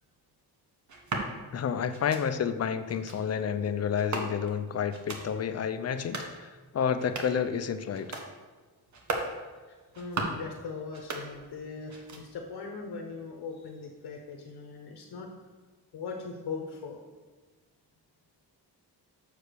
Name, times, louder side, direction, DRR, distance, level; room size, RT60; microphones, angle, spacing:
sound 1, 0.9-1.3 1.9-2.2 2.9-3.2 3.9-4.6 4.9-5.3 5.9-6.3 6.9-7.4 7.9-8.3 8.9-9.3 9.9-10.5 10.9-11.6 11.9-12.5, right 3 dB, 45° right, 1.1 m, -37 dB
voice 1, 1.5-8.2, left 7 dB, 40° left, 10 dB, 0.4 m, -30 dB
voice 2, 9.7-15.3 15.9-17.0, left 4 dB, 70° left, 1 dB, 0.9 m, -40 dB
6.8 x 4.8 x 6.6 m, 1.4 s
wide cardioid pair, 175°, 40 cm